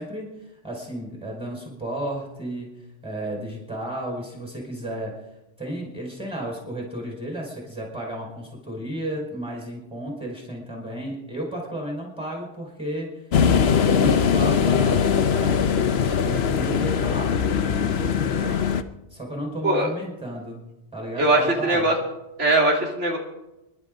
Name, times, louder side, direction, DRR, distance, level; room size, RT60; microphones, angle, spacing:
voice 1, 0.0-2.7 3.0-5.1 5.6-13.2 13.8-18.6 19.1-20.6 20.9-21.9, right 1 dB, 5° right, -1 dB, 5.0 m, -33 dB
sound 1, 13.3-18.8, left 7 dB, 65° left, 1.0 m, -21 dB
voice 2, 21.2-22.0 22.4-23.2, right 2 dB, 80° right, 0 dB, 3.0 m, -20 dB
28.5 x 11.5 x 3.9 m, 0.94 s
omnidirectional pair, 1.2 m